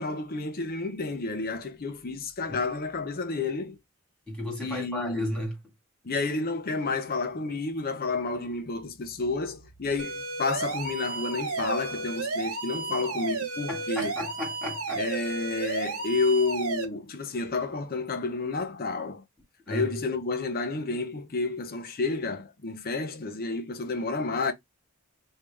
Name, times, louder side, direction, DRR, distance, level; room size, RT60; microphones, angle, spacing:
voice 1, 0.0-3.8 4.6-5.3 6.0-14.1 15.0-19.2 19.7-24.5, left 3 dB, 45° left, 0.7 m, -30 dB
voice 2, 4.3-5.6 13.7-15.1 19.7-20.0, left 1 dB, 5° left, 1.9 m, -33 dB
sound 1, 10.0-16.8, right 3 dB, 85° right, 1.2 m, -33 dB
3.2 x 2.8 x 3.3 m
head